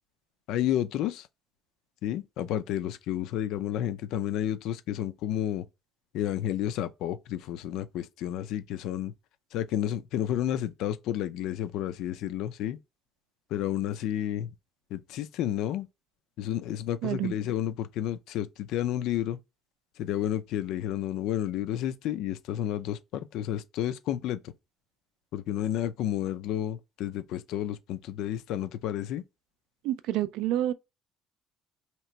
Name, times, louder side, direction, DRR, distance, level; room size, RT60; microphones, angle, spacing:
voice 1, 0.5-1.3 2.0-5.6 6.1-9.1 9.5-12.8 13.5-14.5 14.9-15.9 16.4-19.4 20.0-24.4 25.3-29.2, left 11 dB, 70° left, 0.4 m, -31 dB
voice 2, 17.0-17.3 29.8-30.7, right 13 dB, 75° right, 0.4 m, -28 dB
2.9 x 2.9 x 4.4 m
cardioid pair, 140°, 0 cm